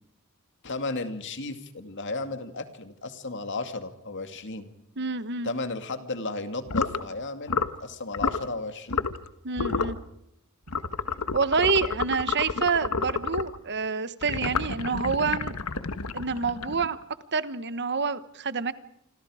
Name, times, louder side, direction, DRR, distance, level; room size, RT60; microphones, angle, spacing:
voice 1, 0.6-4.7 5.4-9.1, left 3 dB, 55° left, 8 dB, 2.4 m, -34 dB
voice 2, 5.0-5.5 9.4-10.0 11.3-15.5 16.1-17.0 17.3-18.7, right 5 dB, 50° right, 14 dB, 1.2 m, -27 dB
sound 1, 6.7-7.0 7.5-7.8 8.1-8.4 8.9-9.3 9.6-10.0 10.7-13.6 14.2-17.0, left 4 dB, 80° left, 1.5 m, -30 dB
27.0 x 26.5 x 5.0 m, 0.78 s
head